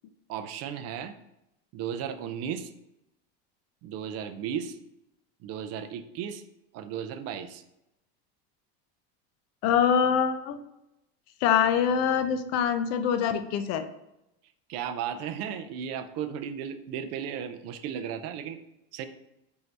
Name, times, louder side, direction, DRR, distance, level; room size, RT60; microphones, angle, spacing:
voice 1, 0.3-1.2 1.7-2.7 3.8-4.8 5.4-6.4 6.7-7.6 14.7-18.6 18.9-19.0, right 8 dB, 55° right, 9 dB, 0.5 m, -35 dB
voice 2, 9.6-10.6 11.4-13.9, left 8 dB, 55° left, 9 dB, 0.5 m, -24 dB
4.5 x 2.6 x 3.2 m, 0.87 s
supercardioid pair, 110°, 31 cm